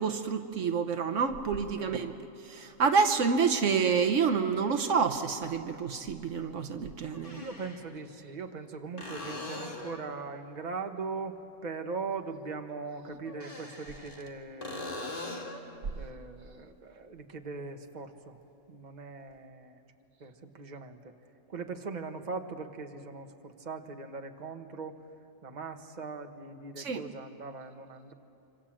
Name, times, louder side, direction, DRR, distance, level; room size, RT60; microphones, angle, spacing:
voice 1, 0.0-2.1 2.5-7.4 26.8-27.0, right 5 dB, 75° right, 7 dB, 1.3 m, -28 dB
voice 2, 1.8-2.2 7.3-15.1 15.9-18.4 18.7-19.8 20.2-21.1 21.5-25.0 25.4-28.1, right 4 dB, 35° right, 5 dB, 1.3 m, -40 dB
sound 1, 3.6-3.7 5.8-5.9 7.1-7.9 9.0-10.1 13.3-14.3 14.6-15.7 19.3-19.4, left 2 dB, 45° left, 2.3 m, -41 dB
26.0 x 25.5 x 7.5 m, 2.7 s
omnidirectional pair, 1.3 m